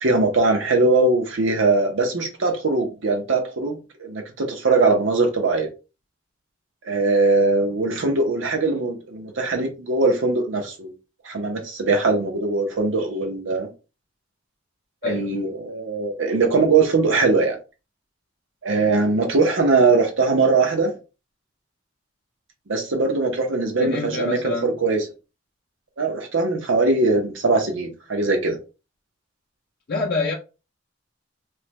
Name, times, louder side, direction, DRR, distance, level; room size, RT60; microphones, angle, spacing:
voice 1, 0.0-5.7 6.9-10.9 11.2-13.7 15.0-17.6 18.6-20.9 22.7-25.0 26.0-28.6, right 3 dB, 85° right, 0.7 m, -21 dB
voice 2, 23.8-24.7 29.9-30.3, left 3 dB, 50° left, 0.4 m, -26 dB
3.2 x 2.1 x 3.0 m
head